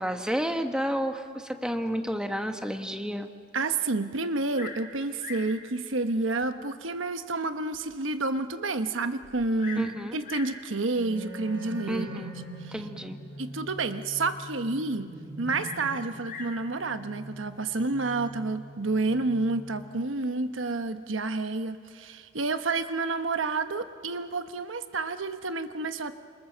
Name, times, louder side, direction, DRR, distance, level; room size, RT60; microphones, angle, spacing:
voice 1, 0.0-3.3 9.8-10.2 11.9-12.4 12.7-13.2, equal, 5° right, 6 dB, 1.3 m, -31 dB
voice 2, 3.5-12.1 12.6-12.7 13.4-15.1 15.4-26.1, right 3 dB, 85° right, 9 dB, 1.1 m, -29 dB
Bird vocalization bird call bird song, 4.5-4.9 5.2-5.6 6.4-6.5 7.1-7.2 7.7-7.8 8.0-8.1 9.2-9.9 10.2-10.6 11.6-11.9 15.6-16.6 17.7-18.1, left 5 dB, 45° left, 5.3 m, -42 dB
sound 1, 10.9-20.3, right 1 dB, 65° right, 7.4 m, -43 dB
27.5 x 27.0 x 7.4 m, 2.1 s
head